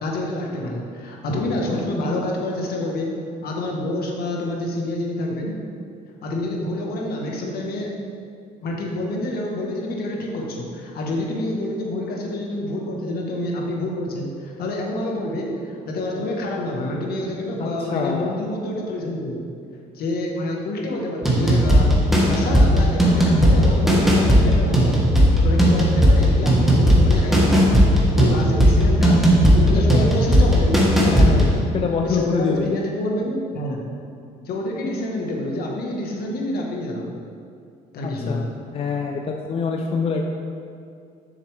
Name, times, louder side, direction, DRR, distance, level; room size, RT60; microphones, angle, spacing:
voice 1, 0.0-3.1 3.4-5.5 6.2-7.9 8.6-19.5 19.9-21.9 22.3-25.0 25.4-27.7 28.1-31.6 32.0-33.9 34.4-37.1 37.9-38.4, left 1 dB, 65° left, -1 dB, 1.3 m, -27 dB
voice 2, 17.6-18.4 29.8-30.1 31.0-31.4 31.7-32.8 38.0-40.2, left 5 dB, 35° left, 2 dB, 0.5 m, -25 dB
sound 1, 21.2-31.6, equal, ahead, 1.4 m, -16 dB
6.8 x 6.6 x 3.4 m, 2.4 s
cardioid pair, 110°, 17 cm